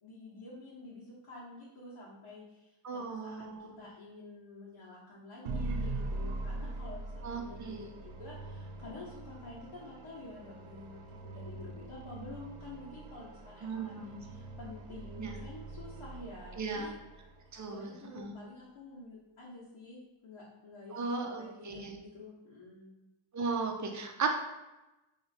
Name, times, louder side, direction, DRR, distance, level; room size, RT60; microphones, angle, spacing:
voice 1, 0.0-16.9 17.7-22.9, left 2 dB, 75° left, -9 dB, 1.3 m, -49 dB
voice 2, 2.8-3.8 7.2-7.8 13.6-14.2 15.2-15.3 16.6-16.9 17.5-18.3 20.9-22.0 23.3-24.3, right 4 dB, 35° right, 3 dB, 0.6 m, -36 dB
sound 1, 5.4-17.6, right 2 dB, 85° right, 0.6 m, -42 dB
3.0 x 2.8 x 4.2 m, 1.0 s
wide cardioid pair, 110°, 50 cm